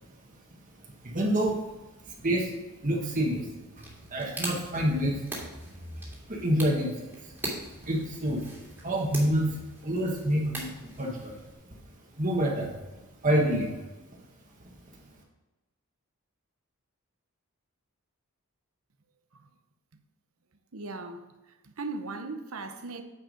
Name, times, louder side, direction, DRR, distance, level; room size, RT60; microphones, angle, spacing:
voice 1, 1.0-1.7 2.1-2.5 2.8-3.5 3.8-3.9 4.1-5.2 6.3-7.3 7.8-8.5 8.8-11.4 12.2-12.8 13.2-13.8 14.6-14.7, right 1 dB, 35° right, 1.4 m, -27 dB
sound 1, 3.8-11.5, right 1 dB, 10° right, 2.0 m, -41 dB
voice 2, 20.7-21.3 21.6-23.0, right 3 dB, 65° right, 0.8 m, -38 dB
9.3 x 4.8 x 5.2 m
head